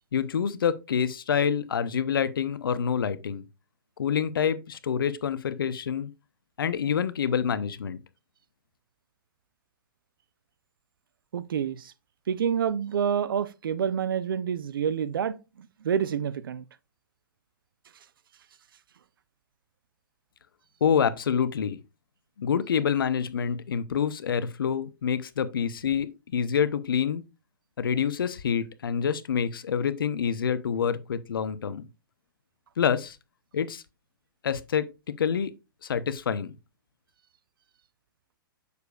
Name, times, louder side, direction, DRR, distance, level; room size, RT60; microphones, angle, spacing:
voice 1, 0.1-3.4 4.0-6.1 6.6-8.0 20.8-21.8 22.4-27.2 27.8-31.9 32.8-33.2 33.5-33.8 34.4-34.9 35.2-35.5 35.8-36.5, left 7 dB, 75° left, 0.6 m, -27 dB
voice 2, 11.3-11.9 12.3-15.4 15.8-16.6, right 8 dB, 75° right, 0.5 m, -27 dB
6.7 x 6.7 x 2.3 m
hypercardioid pair, 120°, 12 cm